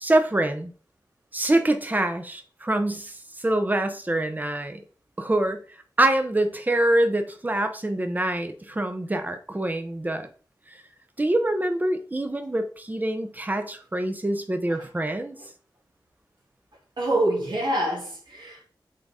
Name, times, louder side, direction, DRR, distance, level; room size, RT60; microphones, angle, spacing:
voice 1, 0.0-0.7 1.3-4.8 5.2-5.6 6.0-10.3 10.7-10.8 11.2-15.4, right 1 dB, 20° right, 0.9 m, -25 dB
voice 2, 17.0-18.6, right 1 dB, 70° right, 2.8 m, -25 dB
7.7 x 4.0 x 3.7 m
wide cardioid pair, 110°, 8 cm